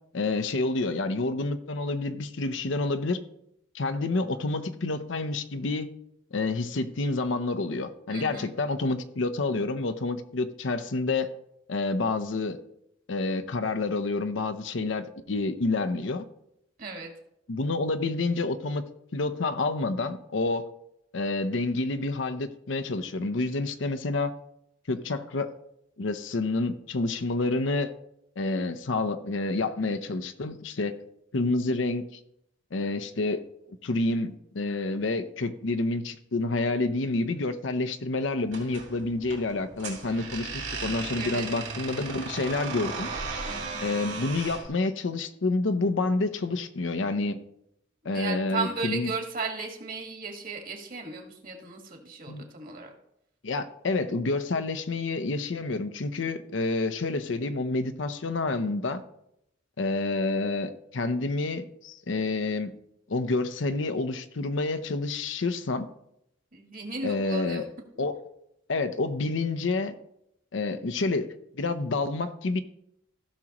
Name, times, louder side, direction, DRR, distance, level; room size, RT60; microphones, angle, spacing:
voice 1, 0.1-3.2 3.7-5.9 6.3-11.3 11.7-12.6 13.1-16.2 17.5-18.8 19.1-20.7 21.1-24.3 24.9-25.5 26.0-27.9 28.4-31.0 31.3-32.2 32.7-33.4 33.8-43.1 43.8-47.4 48.0-49.1 52.3-52.4 53.4-59.0 59.8-62.7 63.1-65.9 67.0-67.6 68.0-68.2 68.7-69.9 70.5-72.6, left 3 dB, 70° left, 11 dB, 0.7 m, -28 dB
voice 2, 8.1-8.5 16.8-17.1 41.2-41.5 43.5-43.8 48.1-52.9 66.5-67.6, right 4 dB, 45° right, 3 dB, 1.7 m, -35 dB
sound 1, 38.5-44.7, right 4 dB, 85° right, 3.2 m, -36 dB
16.0 x 6.2 x 3.0 m, 0.78 s
head